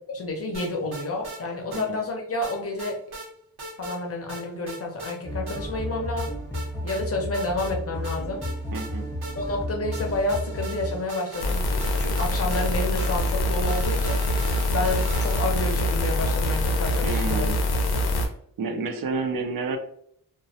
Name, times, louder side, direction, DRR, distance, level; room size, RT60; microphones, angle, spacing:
voice 1, 0.1-3.0 3.8-6.4 6.8-8.4 9.3-14.2 14.7-17.5, left 2 dB, 40° left, 1 dB, 0.6 m, -30 dB
sound 1, 0.5-1.4 1.7-1.9 2.4-3.3 3.6-4.0 4.3-5.2 5.5-5.6 6.2-7.0 7.3-7.7 8.0-9.6 9.9-15.7, right 2 dB, 80° right, 0.9 m, -40 dB
sound 2, 5.2-11.0, equal, 5° left, 0.8 m, -33 dB
voice 2, 8.7-9.1 17.0-17.6 18.6-19.8, right 4 dB, 65° right, 5 dB, 0.5 m, -29 dB
sound 3, 11.4-18.3, left 1 dB, 90° left, 0.5 m, -24 dB
2.2 x 2.1 x 2.7 m, 0.67 s
wide cardioid pair, 135°, 37 cm